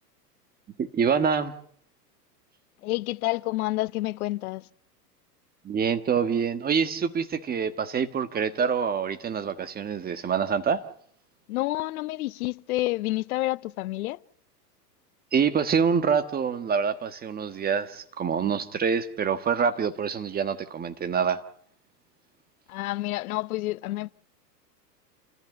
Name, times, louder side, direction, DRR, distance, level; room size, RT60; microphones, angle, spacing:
voice 1, 0.8-1.5 5.6-10.8 15.3-21.4, right 6 dB, 20° right, 1.5 m, -26 dB
voice 2, 2.8-4.7 11.5-14.2 22.7-24.1, left 18 dB, 60° left, 0.9 m, -29 dB
28.5 x 14.5 x 7.8 m
hypercardioid pair, 120°, 50 cm